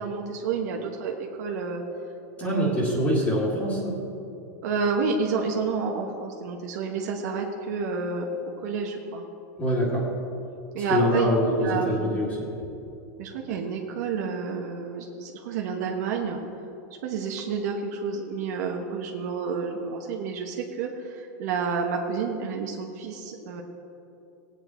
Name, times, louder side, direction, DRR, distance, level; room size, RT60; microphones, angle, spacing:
voice 1, 0.0-1.8 2.4-3.2 4.6-9.2 10.7-11.3 11.6-12.2 13.2-16.4 17.0-23.6, right 5 dB, 70° right, 0 dB, 1.3 m, -30 dB
voice 2, 2.4-3.9 9.6-10.1 10.9-12.5, equal, 20° left, -8 dB, 2.2 m, -24 dB
17.5 x 8.8 x 4.5 m, 2.8 s
supercardioid pair, 145°, 9 cm